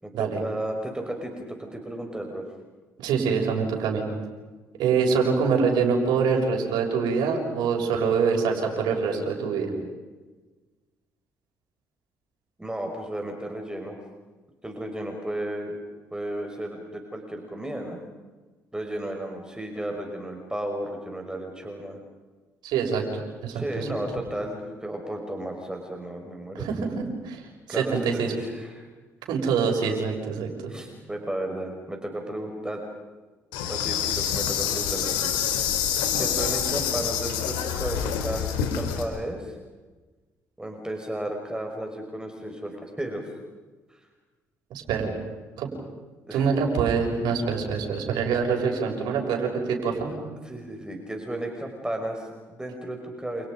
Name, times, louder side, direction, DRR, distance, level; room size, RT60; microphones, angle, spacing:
voice 1, 0.0-2.5 12.6-14.0 14.6-15.8 16.1-18.0 18.7-22.0 23.5-26.7 27.7-28.9 30.7-32.8 33.7-35.3 36.1-39.6 40.6-43.2 43.9-44.0 46.3-46.5 50.1-50.2 50.4-53.5, right 1 dB, 10° right, 3 dB, 5.8 m, -34 dB
voice 2, 3.0-4.0 4.8-9.7 22.6-23.9 26.6-27.4 27.7-28.3 29.3-30.7 44.7-45.1 45.6-45.7 46.3-50.1, right 5 dB, 70° right, 0 dB, 6.8 m, -25 dB
Insect, 33.5-39.0, left 9 dB, 80° left, 3.7 m, -27 dB
29.5 x 29.5 x 5.4 m, 1.3 s
hypercardioid pair, 55°, 8 cm